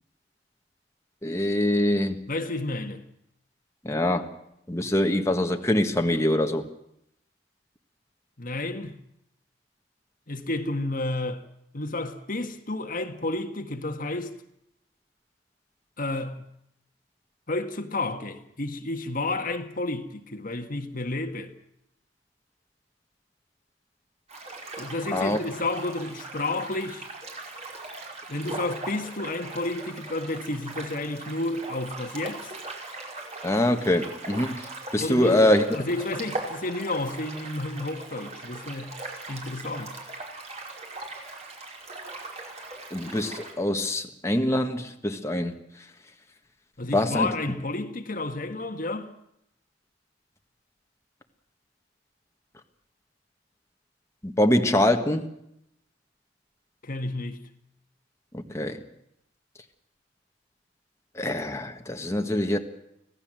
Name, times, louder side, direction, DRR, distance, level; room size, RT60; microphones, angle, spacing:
voice 1, 1.2-2.2 3.8-4.2 4.7-6.6 25.1-25.4 33.4-34.6 34.9-35.6 42.9-45.5 46.9-47.3 54.2-55.3 58.3-58.8 61.2-62.6, left 1 dB, 15° left, 1.6 m, -24 dB
voice 2, 2.3-3.0 8.4-9.0 10.3-11.4 11.7-14.3 16.0-16.4 17.5-21.5 24.8-27.1 28.3-32.5 35.0-39.0 39.3-40.0 46.8-49.1 56.8-57.4, left 2 dB, 50° left, 1.6 m, -31 dB
sound 1, 24.3-43.5, right 2 dB, 40° right, 5.1 m, -39 dB
25.5 x 17.0 x 7.7 m
head